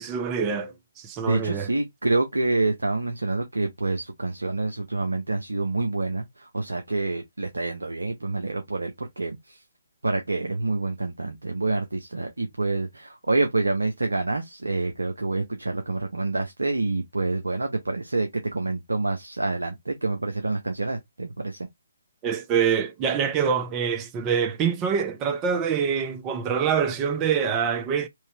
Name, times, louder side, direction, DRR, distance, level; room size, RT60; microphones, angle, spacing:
voice 1, 0.0-1.7 22.2-28.1, right 7 dB, 20° right, 0.4 m, -25 dB
voice 2, 1.3-9.6 10.0-21.7, right 2 dB, 75° right, 0.6 m, -27 dB
3.2 x 2.7 x 3.1 m
figure-of-eight pair, 140°, 0 cm